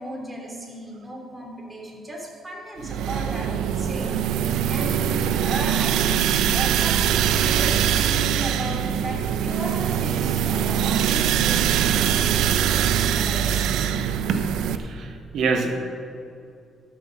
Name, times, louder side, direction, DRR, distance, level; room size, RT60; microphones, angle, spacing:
voice 1, 0.0-4.4 4.6-13.7, right 1 dB, 15° right, -1 dB, 2.9 m, -35 dB
sound 1, 2.8-14.7, right 9 dB, 90° right, 0.5 m, -22 dB
voice 2, 14.7-15.8, right 4 dB, 70° right, 5 dB, 1.3 m, -25 dB
12.5 x 6.5 x 6.4 m, 2.5 s
cardioid pair, 90°, 0 cm